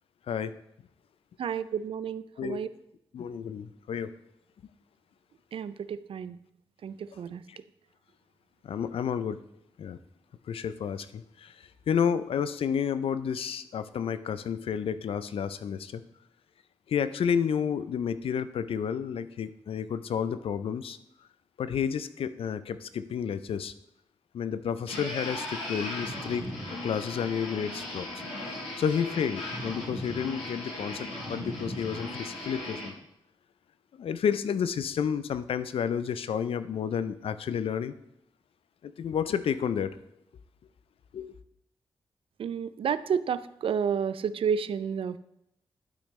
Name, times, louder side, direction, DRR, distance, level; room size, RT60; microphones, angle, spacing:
voice 1, 1.4-2.7 5.5-6.4 6.8-7.4 42.4-45.2, right 7 dB, 70° right, 15 dB, 0.4 m, -31 dB
voice 2, 3.1-4.1 7.5-7.6 8.6-9.4 9.8-10.0 10.5-11.5 11.9-16.0 16.9-21.0 21.6-23.7 24.3-28.1 28.8-32.9 34.0-37.9 38.8-40.0 41.1-41.3, left 7 dB, 75° left, 13 dB, 0.4 m, -31 dB
sound 1, 24.9-32.9, left 1 dB, 90° left, 1.8 m, -37 dB
11.5 x 5.1 x 3.2 m, 0.78 s
supercardioid pair, 45°, 10 cm